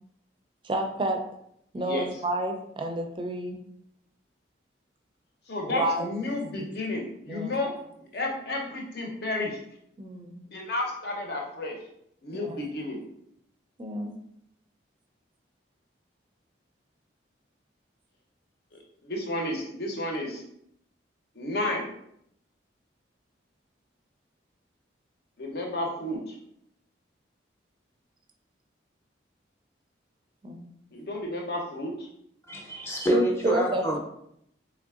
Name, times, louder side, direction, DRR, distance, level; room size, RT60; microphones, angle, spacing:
voice 1, 0.6-1.2 1.7-3.6 5.7-6.1 7.3-7.5 10.0-10.4 12.3-12.6 13.8-14.2 30.4-30.7 33.1-34.0, right 2 dB, 25° right, 4 dB, 0.4 m, -30 dB
voice 2, 5.5-9.6 10.5-11.8 12.2-13.0 19.0-20.4 21.3-21.9 25.4-26.4 30.9-32.1, left 2 dB, 60° left, 1 dB, 0.7 m, -32 dB
voice 3, 32.5-34.0, equal, 15° left, -1 dB, 0.6 m, -27 dB
3.6 x 3.3 x 2.4 m, 0.73 s
head